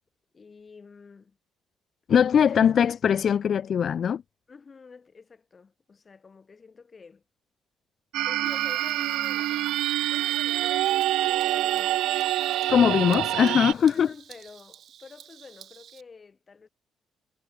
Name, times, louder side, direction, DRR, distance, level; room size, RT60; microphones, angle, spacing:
voice 1, 0.3-1.4 2.4-2.7 4.5-7.2 8.2-9.7 10.1-12.1 12.4-12.5 12.9-13.4 13.8-16.7, left 5 dB, 35° left, 7.0 m, -49 dB
voice 2, 2.1-4.2 12.7-14.1, left 8 dB, 55° left, 0.5 m, -21 dB
sound 1, 8.1-13.7, right 15 dB, 90° right, 0.4 m, -26 dB
Bird vocalization bird call bird song, 8.4-16.0, right 10 dB, 65° right, 7.0 m, -45 dB
cardioid pair, 90°, 0 cm